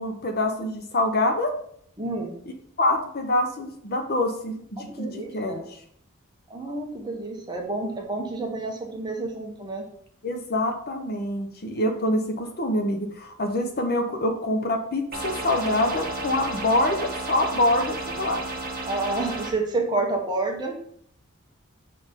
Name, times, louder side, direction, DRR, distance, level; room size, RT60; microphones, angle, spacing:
voice 1, 0.0-1.5 2.8-5.5 10.2-18.4, left 1 dB, 45° left, 5 dB, 0.8 m, -25 dB
voice 2, 2.0-2.3 4.8-5.6 6.5-9.8 11.7-11.8 18.8-20.8, right 2 dB, 20° right, 1 dB, 1.0 m, -29 dB
sound 1, 15.1-19.5, right 2 dB, 40° right, 1.2 m, -32 dB
5.8 x 4.1 x 5.2 m, 0.65 s
head